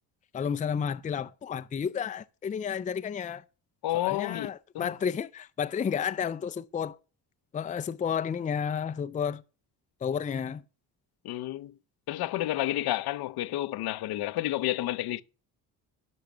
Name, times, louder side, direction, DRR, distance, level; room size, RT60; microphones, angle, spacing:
voice 1, 0.3-3.4 4.0-7.0 7.5-9.4 10.0-10.6, left 7 dB, 20° left, 0.4 m, -31 dB
voice 2, 3.8-4.9 11.2-11.8 12.1-15.2, left 15 dB, 65° left, 0.7 m, -30 dB
10.5 x 5.8 x 6.0 m
cardioid pair, 100°, 41 cm